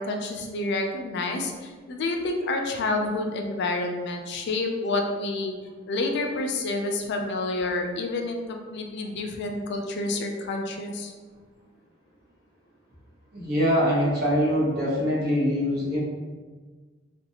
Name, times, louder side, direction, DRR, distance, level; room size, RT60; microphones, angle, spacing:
voice 1, 0.0-5.6 5.9-11.1, left 2 dB, 60° left, 3 dB, 0.4 m, -29 dB
voice 2, 13.3-16.0, equal, 55° right, -6 dB, 1.1 m, -23 dB
3.1 x 2.5 x 2.8 m, 1.4 s
head